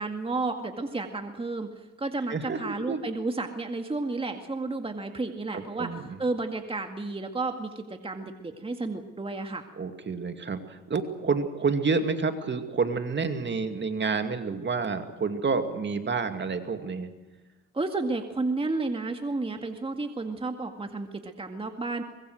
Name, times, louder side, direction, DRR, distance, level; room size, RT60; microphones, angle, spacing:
voice 1, 0.0-5.9 6.2-9.7 17.7-22.0, right 3 dB, 20° right, 5 dB, 2.1 m, -32 dB
voice 2, 2.3-3.0 5.5-6.2 9.8-17.1, right 4 dB, 35° right, 7 dB, 2.4 m, -29 dB
24.0 x 21.5 x 6.5 m, 1.2 s
cardioid pair, 90°, 30 cm